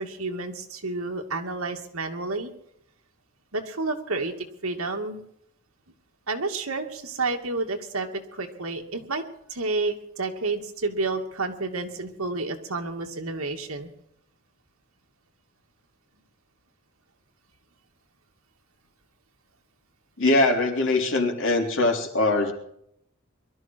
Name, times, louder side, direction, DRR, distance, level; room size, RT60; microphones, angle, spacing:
voice 1, 0.0-2.5 3.5-5.2 6.3-9.2 9.5-13.9, right 3 dB, 85° right, 3 dB, 2.5 m, -30 dB
voice 2, 20.2-22.5, left 2 dB, 60° left, 2 dB, 3.5 m, -22 dB
23.0 x 13.0 x 4.7 m, 0.70 s
head